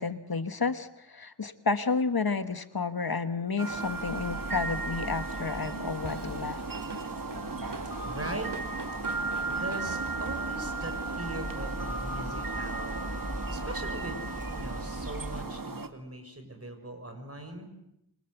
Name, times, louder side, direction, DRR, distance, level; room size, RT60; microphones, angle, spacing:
voice 1, 0.0-6.6 13.5-13.7, left 4 dB, 60° left, 10 dB, 1.4 m, -31 dB
sound 1, 3.6-15.9, right 3 dB, 55° right, 2.2 m, -35 dB
sound 2, 3.7-15.4, equal, 20° right, 7.2 m, -42 dB
Drum kit / Drum, 6.0-10.9, right 3 dB, 80° right, 2.8 m, -45 dB
voice 2, 8.0-8.8 9.2-13.0 13.3-17.7, right 1 dB, 35° right, 6 dB, 6.3 m, -41 dB
28.0 x 24.5 x 8.1 m, 0.81 s
wide cardioid pair, 65°, 40 cm